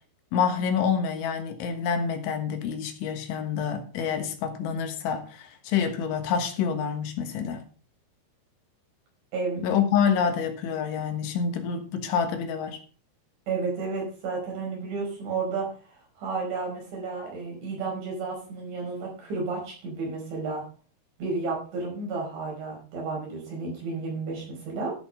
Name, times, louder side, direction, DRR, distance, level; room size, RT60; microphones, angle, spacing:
voice 1, 0.3-7.6 9.6-12.8, left 7 dB, 75° left, 6 dB, 3.6 m, -27 dB
voice 2, 9.3-9.7 13.5-15.7 16.2-20.6 21.2-24.9, right 4 dB, 65° right, -1 dB, 7.3 m, -32 dB
13.0 x 7.0 x 5.4 m, 0.39 s
omnidirectional pair, 5.7 m